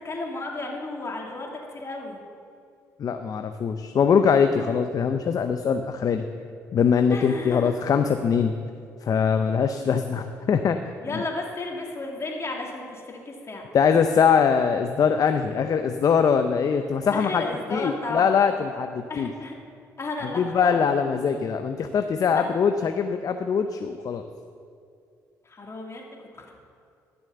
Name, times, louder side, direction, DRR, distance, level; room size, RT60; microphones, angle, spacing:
voice 1, 0.0-2.2 7.1-7.7 11.0-13.7 17.1-18.3 19.1-19.6 20.0-20.8 22.3-22.5 25.5-26.5, left 2 dB, 40° left, 0 dB, 2.6 m, -33 dB
voice 2, 3.0-6.2 6.7-8.5 9.0-10.8 11.1-11.2 13.7-17.4 17.7-19.3 20.3-24.2, left 6 dB, 55° left, 7 dB, 0.7 m, -22 dB
12.0 x 7.0 x 6.9 m, 2.3 s
supercardioid pair, 55°, 7 cm